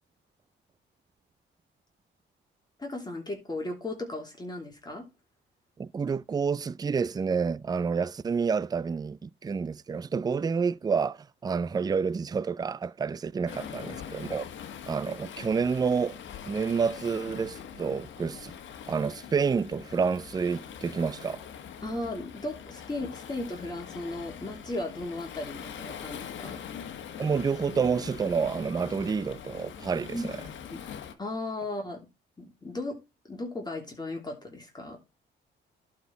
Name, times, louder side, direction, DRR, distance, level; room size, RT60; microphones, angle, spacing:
voice 1, 2.8-5.0 21.8-26.6 30.1-30.3 30.7-30.8 31.2-32.0 32.4-33.0 33.3-35.0, left 2 dB, 20° left, 3.0 m, -36 dB
voice 2, 5.8-14.5 14.9-16.2 16.5-18.5 18.9-21.4 27.2-30.3, right 5 dB, 20° right, 0.4 m, -29 dB
Waves surf, 13.5-31.1, left 8 dB, 70° left, 1.4 m, -43 dB
11.5 x 4.4 x 4.6 m
cardioid pair, 90°, 20 cm